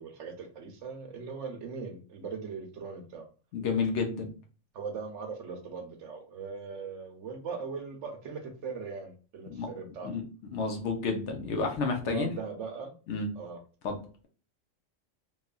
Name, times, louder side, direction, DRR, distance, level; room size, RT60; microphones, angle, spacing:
voice 1, 0.0-3.2 4.7-10.1 12.0-12.9 13.4-13.6, right 5 dB, 70° right, 4 dB, 0.9 m, -39 dB
voice 2, 3.5-4.3 9.5-10.2 10.5-12.3 13.1-13.3 13.8-14.0, left 4 dB, 65° left, 3 dB, 0.9 m, -31 dB
2.9 x 2.3 x 2.3 m, 0.38 s
omnidirectional pair, 1.4 m